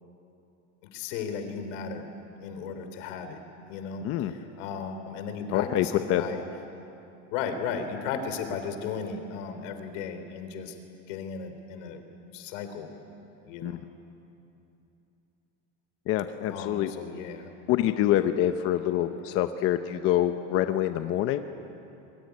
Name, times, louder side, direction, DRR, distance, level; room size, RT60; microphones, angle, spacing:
voice 1, 0.9-2.1 2.4-3.4 3.7-6.4 7.3-10.8 11.1-12.0 12.3-12.9 13.5-13.8 16.5-17.5, left 6 dB, 85° left, 7 dB, 3.6 m, -35 dB
voice 2, 4.0-4.3 5.5-6.2 13.6-13.8 16.1-16.9 17.7-21.4, left 12 dB, 40° left, 8 dB, 0.8 m, -26 dB
26.5 x 23.5 x 9.6 m, 2.8 s
cardioid pair, 175°, 36 cm